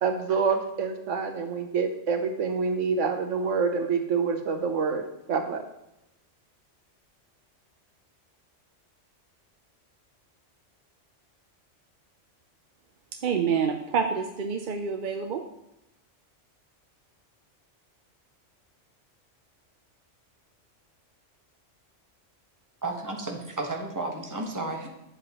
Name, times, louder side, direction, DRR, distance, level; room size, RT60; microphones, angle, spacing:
voice 1, 0.0-5.6, right 5 dB, 80° right, 6 dB, 1.2 m, -27 dB
voice 2, 13.2-15.4, right 6 dB, 55° right, 5 dB, 0.6 m, -27 dB
voice 3, 22.8-24.9, right 2 dB, 15° right, 0 dB, 1.2 m, -32 dB
9.4 x 7.7 x 3.0 m, 0.88 s
omnidirectional pair, 1.3 m